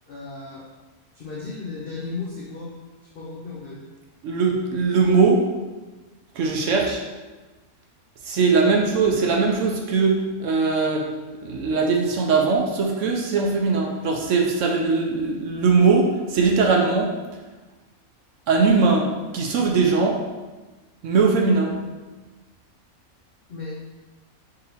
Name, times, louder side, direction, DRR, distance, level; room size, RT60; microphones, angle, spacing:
voice 1, 0.1-0.7 1.2-2.7 3.2-3.8 8.6-8.8 23.5-23.8, left 3 dB, 65° left, -4 dB, 0.5 m, -35 dB
voice 2, 4.2-5.4 6.3-7.0 8.2-11.1 11.4-17.1 18.5-19.1 19.3-20.2 21.0-21.7, right 4 dB, 70° right, 1 dB, 0.8 m, -20 dB
4.0 x 2.7 x 4.0 m, 1.2 s
omnidirectional pair, 1.5 m